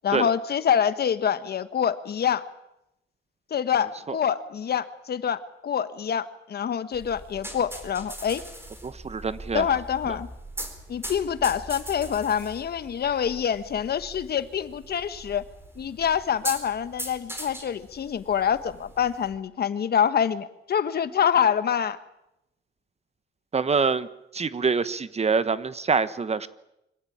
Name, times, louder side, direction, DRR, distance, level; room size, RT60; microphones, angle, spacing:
voice 1, 0.0-2.4 3.5-8.4 9.5-10.3 10.9-15.4 15.8-22.0, left 8 dB, 55° left, 12 dB, 1.3 m, -26 dB
sound 1, 6.9-19.3, right 1 dB, 10° right, 4.5 m, -41 dB
voice 2, 8.8-9.7 23.5-24.1 24.3-26.5, right 5 dB, 30° right, 14 dB, 1.2 m, -25 dB
24.5 x 16.5 x 8.8 m, 0.85 s
cardioid pair, 90°, 20 cm